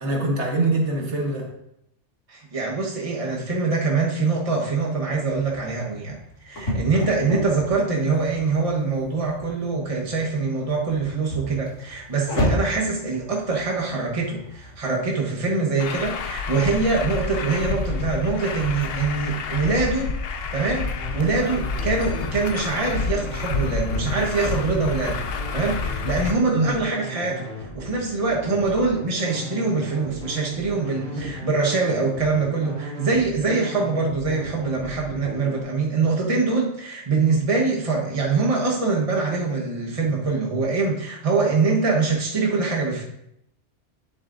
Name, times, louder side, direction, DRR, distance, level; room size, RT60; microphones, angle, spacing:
voice 1, 0.0-1.5 26.5-26.8 28.7-28.8 31.1-31.3, right 2 dB, 65° right, -1 dB, 1.8 m, -24 dB
voice 2, 2.3-6.2 6.5-20.1 20.5-43.0, right 4 dB, 30° right, -2 dB, 1.3 m, -24 dB
sound 1, 5.1-14.8, equal, 90° left, 2.4 m, -32 dB
Truck, 15.8-26.3, left 4 dB, 60° left, 0.8 m, -29 dB
sound 2, 21.0-35.6, equal, 85° right, 2.7 m, -38 dB
10.5 x 7.5 x 2.6 m, 0.78 s
omnidirectional pair, 1.3 m